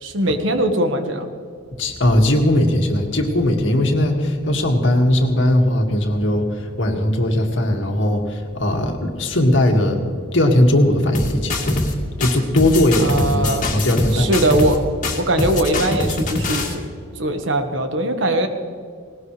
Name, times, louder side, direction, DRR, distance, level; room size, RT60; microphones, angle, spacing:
voice 1, 0.0-1.3 13.0-13.7 14.1-14.8 15.2-16.8 17.2-18.5, right 1 dB, 75° right, 6 dB, 1.5 m, -20 dB
voice 2, 1.8-11.8 12.2-14.3, left 1 dB, 75° left, 2 dB, 2.1 m, -18 dB
sound 1, 11.1-11.9 12.2-14.8 15.0-16.7, left 2 dB, 40° left, 2.2 m, -23 dB
19.0 x 19.0 x 3.3 m, 2.2 s
head